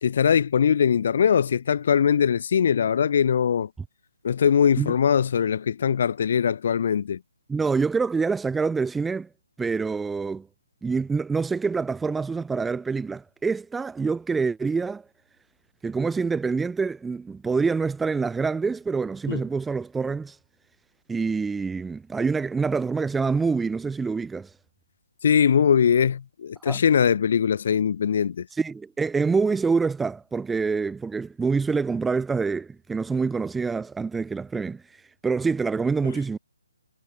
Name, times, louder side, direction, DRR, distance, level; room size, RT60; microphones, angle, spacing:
voice 1, 0.0-3.7 4.2-7.2 19.3-19.4 25.2-28.5, left 7 dB, 50° left, 2.2 m, -21 dB
voice 2, 7.5-9.3 9.6-10.5 10.8-15.0 15.8-20.4 21.1-24.5 26.6-26.8 28.5-36.4, right 4 dB, 5° right, 0.4 m, -26 dB
hypercardioid pair, 160°, 0 cm